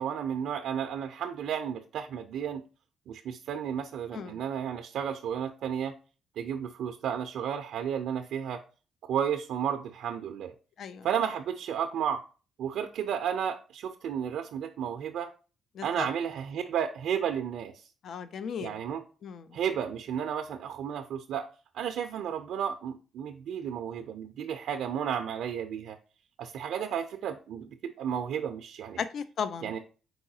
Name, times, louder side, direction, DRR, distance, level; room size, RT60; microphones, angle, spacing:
voice 1, 0.0-2.6 3.1-5.9 6.4-8.6 9.0-10.5 11.0-12.2 12.6-15.3 15.8-17.7 18.6-19.0 19.5-21.5 21.7-26.0 26.4-27.7 28.0-29.0 29.6-29.8, right 8 dB, 75° right, 6 dB, 0.3 m, -32 dB
voice 2, 15.8-16.1 18.0-18.7 19.2-19.5 29.0-29.8, left 6 dB, 65° left, 13 dB, 0.3 m, -36 dB
4.6 x 3.9 x 2.7 m, 0.36 s
cardioid pair, 90°, 0 cm